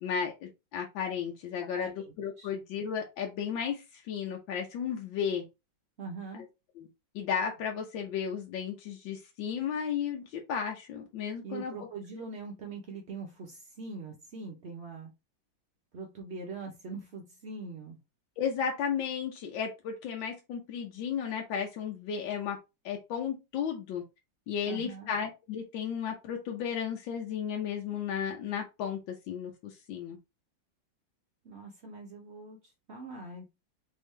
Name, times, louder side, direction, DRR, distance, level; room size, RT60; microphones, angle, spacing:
voice 1, 0.0-5.4 6.3-6.4 6.8-6.9 7.1-11.7 18.4-22.6 22.8-24.0 24.5-30.2, left 7 dB, 80° left, 1 dB, 1.5 m, -34 dB
voice 2, 1.8-2.5 6.0-6.5 11.4-15.1 15.9-18.0 24.7-25.1 31.4-33.4, right 3 dB, 65° right, 1 dB, 0.6 m, -42 dB
3.5 x 3.4 x 3.2 m, 0.25 s
omnidirectional pair, 2.1 m